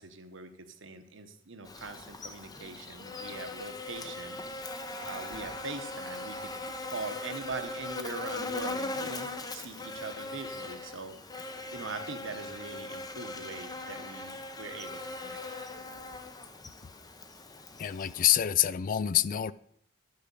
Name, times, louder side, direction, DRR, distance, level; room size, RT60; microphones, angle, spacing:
voice 1, 0.0-15.4, right 3 dB, 65° right, 1.1 m, -42 dB
Buzz, 1.7-18.4, left 2 dB, 20° left, 0.8 m, -40 dB
voice 2, 17.8-19.5, left 11 dB, 45° left, 0.4 m, -26 dB
11.5 x 5.1 x 6.8 m
head